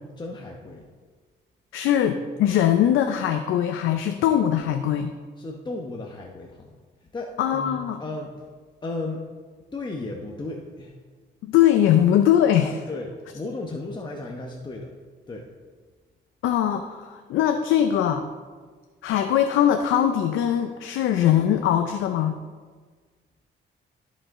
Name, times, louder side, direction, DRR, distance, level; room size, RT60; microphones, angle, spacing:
voice 1, 0.2-0.9 5.4-6.7 7.0-8.4 8.8-9.2 9.7-11.0 12.9-14.9 15.3-15.5, left 2 dB, 20° left, 0 dB, 0.9 m, -34 dB
voice 2, 1.7-5.1 7.4-8.0 11.4-12.8 16.4-18.2 19.0-22.4, left 10 dB, 85° left, 7 dB, 0.5 m, -21 dB
13.0 x 5.3 x 3.7 m, 1.5 s
cardioid pair, 90°, 20 cm